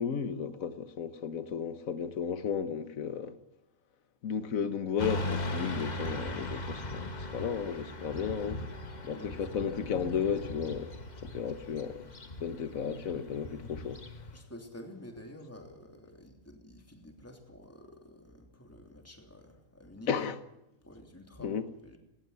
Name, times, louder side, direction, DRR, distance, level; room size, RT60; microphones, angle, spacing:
voice 1, 0.0-3.3 4.2-8.6 9.0-10.9 11.2-12.1 12.4-14.0 20.1-20.4 21.4-21.7, left 7 dB, 80° left, 1.6 m, -34 dB
Motorcycle / Traffic noise roadway noise, 5.0-14.4, left 1 dB, 30° left, 1.5 m, -39 dB
voice 2, 9.1-9.5 14.3-20.1 20.8-21.5 21.8-22.0, left 1 dB, 10° left, 3.0 m, -50 dB
18.5 x 18.0 x 9.6 m
omnidirectional pair, 1.4 m